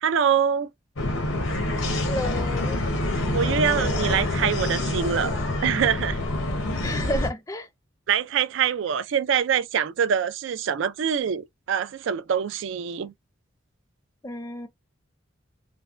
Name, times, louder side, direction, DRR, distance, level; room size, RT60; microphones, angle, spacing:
voice 1, 0.0-0.7 3.3-5.4 5.6-6.2 8.1-13.1, right 7 dB, 70° right, 0.3 m, -24 dB
sound 1, 1.0-7.3, left 1 dB, 90° left, 0.9 m, -26 dB
voice 2, 2.0-2.8 6.8-7.7 14.2-14.7, left 1 dB, 15° left, 0.5 m, -31 dB
3.2 x 2.1 x 2.4 m
head